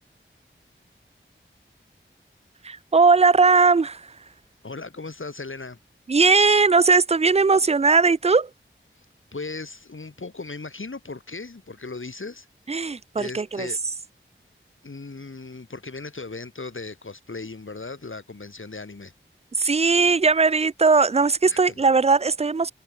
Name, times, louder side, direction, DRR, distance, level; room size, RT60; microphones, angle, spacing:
voice 1, 2.6-4.1 6.1-8.5 12.7-13.7 19.6-22.7, right 4 dB, 30° right, 0.4 m, -19 dB
voice 2, 4.6-5.8 9.0-9.1 9.3-12.5 13.2-13.8 14.8-19.1 21.5-21.6, left 3 dB, 70° left, 3.4 m, -37 dB
wide cardioid pair, 60°, 21 cm